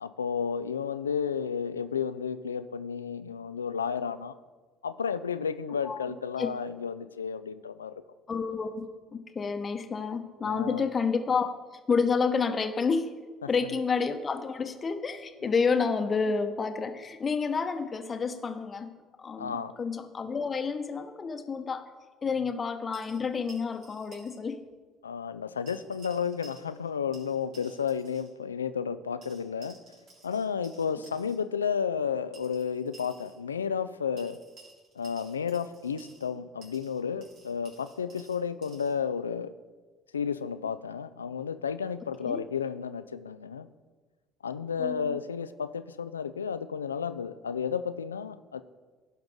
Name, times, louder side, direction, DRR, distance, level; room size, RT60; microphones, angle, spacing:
voice 1, 0.0-4.4 4.8-7.9 10.4-10.9 15.4-15.5 19.4-19.8 25.0-29.8 30.2-34.4 35.0-39.5 40.1-43.7 44.4-48.6, left 7 dB, 85° left, 13 dB, 0.3 m, -32 dB
voice 2, 8.3-8.9 9.1-11.5 11.9-13.1 13.5-21.9 22.2-24.6 42.2-42.4 44.8-45.2, left 5 dB, 35° left, 8 dB, 1.0 m, -29 dB
sound 1, 22.9-24.4 24.7-24.8 25.7-26.9 27.1-28.3 29.2-31.4 32.3-33.4 34.2-36.3 36.6-38.9, right 3 dB, 55° right, 3.3 m, -54 dB
16.0 x 5.8 x 3.7 m, 1.4 s
figure-of-eight pair, 55°, 0 cm